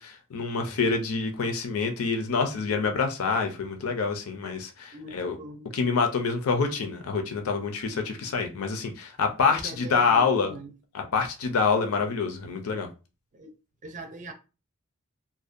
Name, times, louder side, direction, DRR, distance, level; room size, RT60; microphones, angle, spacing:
voice 1, 0.0-5.4 5.7-10.5 10.9-12.9, left 5 dB, 80° left, 0.5 m, -26 dB
voice 2, 4.9-5.8 9.5-10.8 13.3-13.5 13.8-14.3, right 2 dB, 35° right, 0.5 m, -42 dB
2.5 x 2.1 x 2.5 m
head